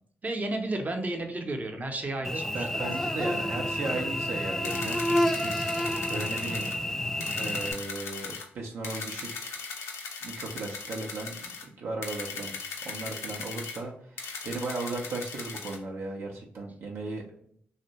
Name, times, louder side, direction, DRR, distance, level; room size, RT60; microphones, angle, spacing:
voice 1, 0.2-2.8, right 2 dB, 35° right, 4 dB, 0.6 m, -32 dB
Cricket / Buzz, 2.2-7.7, left 1 dB, 10° left, 0.3 m, -29 dB
voice 2, 2.2-6.7 7.3-9.6 10.2-11.4 11.8-12.6 12.8-17.3, right 3 dB, 80° right, 0 dB, 0.4 m, -36 dB
sound 1, 4.6-6.8 7.2-8.5 8.8-11.7 12.0-13.8 14.2-15.8, left 5 dB, 85° left, 0.4 m, -39 dB
2.6 x 2.0 x 2.9 m, 0.63 s
supercardioid pair, 55°, 4 cm